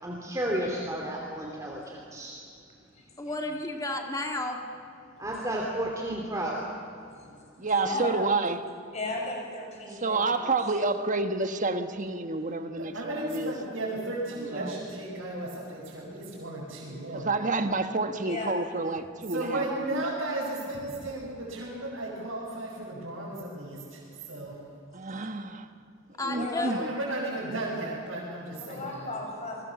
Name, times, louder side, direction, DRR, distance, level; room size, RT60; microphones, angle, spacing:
voice 1, 0.0-2.4 5.2-6.7, right 1 dB, 15° right, -1 dB, 2.7 m, -32 dB
voice 2, 3.2-4.6 7.9-8.3 26.2-26.7, left 1 dB, 20° left, 2 dB, 2.2 m, -32 dB
voice 3, 7.6-8.7 9.9-12.9 13.2-13.5 14.5-14.8 17.1-20.0 24.9-25.7 26.2-27.0, right 3 dB, 40° right, 7 dB, 1.4 m, -29 dB
voice 4, 8.9-10.5 18.2-18.5 26.3-26.7 28.6-29.6, left 2 dB, 35° left, 0 dB, 6.0 m, -35 dB
voice 5, 12.8-17.3 19.3-24.6 26.7-29.1, right 2 dB, 80° right, -6 dB, 5.9 m, -35 dB
29.0 x 21.5 x 7.2 m, 2.5 s
head